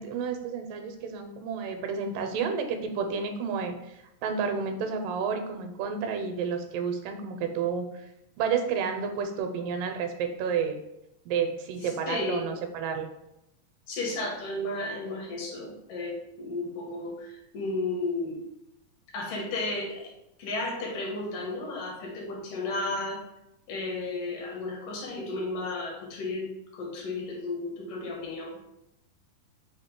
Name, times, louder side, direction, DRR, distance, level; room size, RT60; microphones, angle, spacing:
voice 1, 0.0-8.1 8.4-10.8 11.3-13.1, right 6 dB, 85° right, 5 dB, 2.2 m, -31 dB
voice 2, 12.1-12.4 13.9-18.4 19.1-20.1 20.4-23.2 23.7-26.5 26.7-28.6, left 2 dB, 75° left, -1 dB, 2.5 m, -33 dB
5.8 x 2.0 x 3.7 m, 0.87 s
omnidirectional pair, 3.9 m